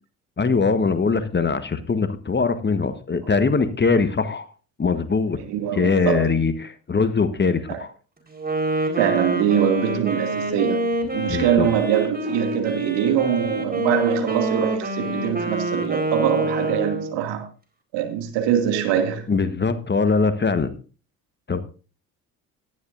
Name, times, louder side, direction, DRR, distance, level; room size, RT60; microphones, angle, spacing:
voice 1, 0.4-4.5 4.8-5.4 5.7-7.9 11.2-11.7 19.3-20.7 21.5-21.6, left 4 dB, 20° left, 1.3 m, -22 dB
voice 2, 5.5-6.2 7.7-7.8 8.9-17.4 17.9-19.2, right 9 dB, 60° right, 2.5 m, -23 dB
Wind instrument woodwind instrument, 8.3-17.3, right 1 dB, 20° right, 4.3 m, -26 dB
18.0 x 11.5 x 2.6 m
figure-of-eight pair, 55°, 47 cm